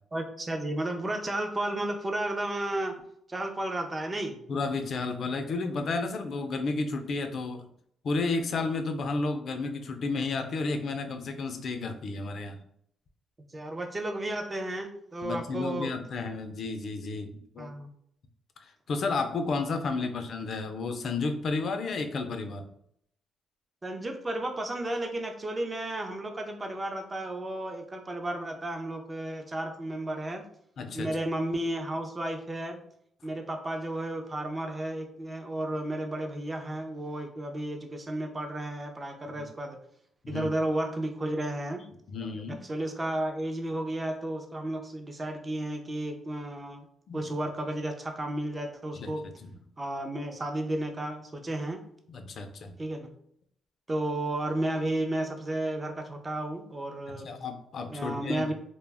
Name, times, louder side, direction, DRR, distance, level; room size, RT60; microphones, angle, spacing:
voice 1, 0.1-3.0 3.3-4.4 13.5-15.9 17.6-17.9 20.0-20.1 23.8-30.5 30.9-32.8 33.2-39.8 40.3-41.8 42.5-46.8 47.1-49.3 49.8-51.8 52.8-53.1 53.9-57.3 57.9-58.5, right 1 dB, 25° right, 4 dB, 0.5 m, -33 dB
voice 2, 4.5-7.6 8.0-12.6 15.2-17.7 18.6-22.7 30.8-31.1 39.4-39.5 40.2-40.5 42.1-42.6 47.1-47.2 48.9-49.1 49.4-49.5 52.1-52.8 57.1-58.5, left 3 dB, 55° left, 6 dB, 0.3 m, -32 dB
2.2 x 2.0 x 3.3 m, 0.70 s
cardioid pair, 90°, 0 cm